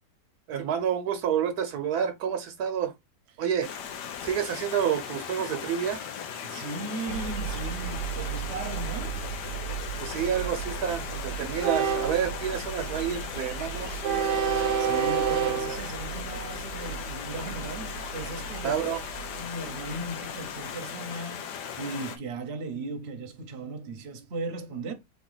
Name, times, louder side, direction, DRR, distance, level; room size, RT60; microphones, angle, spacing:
voice 1, 0.5-2.9 3.4-3.7 4.2-6.0 10.0-14.0 18.6-19.0, right 8 dB, 70° right, 1.2 m, -29 dB
Stream, 3.6-22.2, left 8 dB, 85° left, 1.4 m, -38 dB
voice 2, 6.4-9.3 14.8-18.8 19.4-24.9, right 2 dB, 45° right, 1.0 m, -37 dB
Train, 7.1-20.1, right 7 dB, 85° right, 1.3 m, -32 dB
3.8 x 3.6 x 3.9 m
omnidirectional pair, 1.7 m